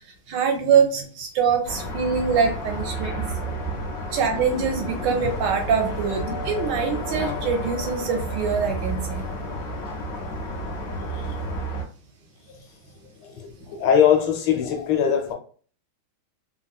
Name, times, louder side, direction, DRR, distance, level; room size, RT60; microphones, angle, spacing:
voice 1, 0.3-3.1 4.1-9.2, right 6 dB, 75° right, 1.1 m, -24 dB
sound 1, 1.6-11.8, right 1 dB, 55° left, 1.0 m, -31 dB
voice 2, 4.2-5.2 6.2-6.5 11.1-11.3 13.2-15.3, left 8 dB, 90° left, 1.6 m, -23 dB
3.6 x 2.3 x 2.3 m
omnidirectional pair, 2.2 m